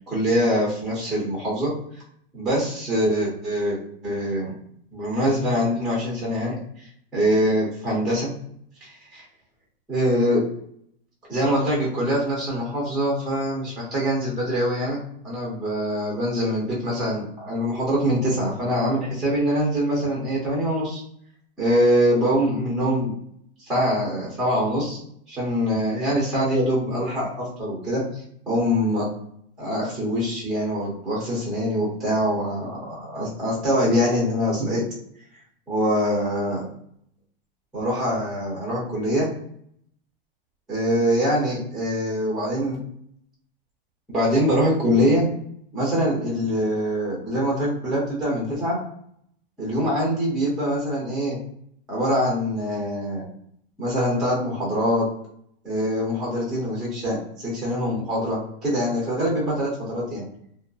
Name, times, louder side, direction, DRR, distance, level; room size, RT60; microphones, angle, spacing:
voice 1, 0.1-1.7 2.3-3.8 4.0-4.5 4.9-6.5 7.1-8.3 8.8-9.2 9.9-10.4 11.3-15.0 15.2-21.0 21.6-23.1 23.6-25.0 25.3-29.1 29.6-34.8 35.7-36.7 37.7-39.3 40.7-42.8 44.1-45.3 45.7-48.8 49.6-51.4 51.9-53.2 53.8-55.1 55.6-60.2, equal, ahead, -4 dB, 0.4 m, -24 dB
2.6 x 2.2 x 2.2 m, 0.68 s
supercardioid pair, 165°, 30 cm